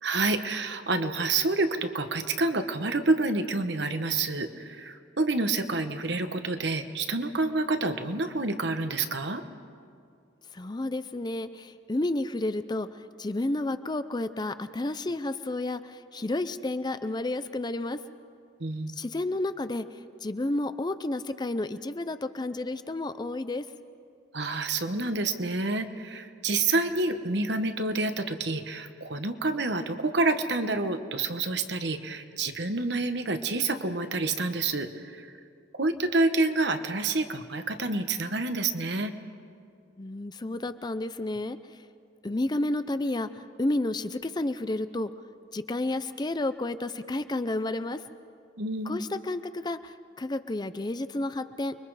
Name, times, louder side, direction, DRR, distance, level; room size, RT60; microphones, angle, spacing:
voice 1, 0.0-9.4 18.6-18.9 24.3-35.3 35.7-39.1 48.6-49.1, right 3 dB, 65° right, 8 dB, 1.2 m, -28 dB
voice 2, 10.5-18.0 19.0-19.9 20.2-23.6 40.0-41.8 42.2-45.1 45.5-48.0 48.9-51.8, left 2 dB, 25° left, 12 dB, 0.5 m, -31 dB
29.5 x 22.5 x 4.9 m, 2.3 s
head